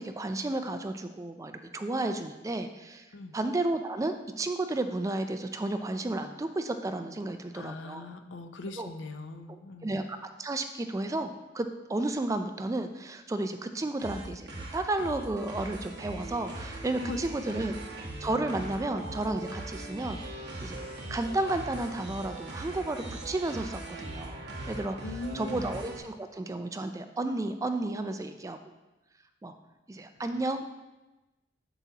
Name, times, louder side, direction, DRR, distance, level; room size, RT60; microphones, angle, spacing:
voice 1, 0.0-8.1 8.8-8.9 9.5-17.8 18.2-25.0 25.3-28.7 29.4-29.6 29.9-30.7, right 2 dB, 15° right, 7 dB, 0.3 m, -33 dB
voice 2, 7.5-9.9 17.0-17.2 25.0-25.6, left 2 dB, 75° left, 8 dB, 0.6 m, -40 dB
sound 1, 14.0-26.0, right 2 dB, 60° right, 1.2 m, -40 dB
7.1 x 6.8 x 2.8 m, 1.1 s
head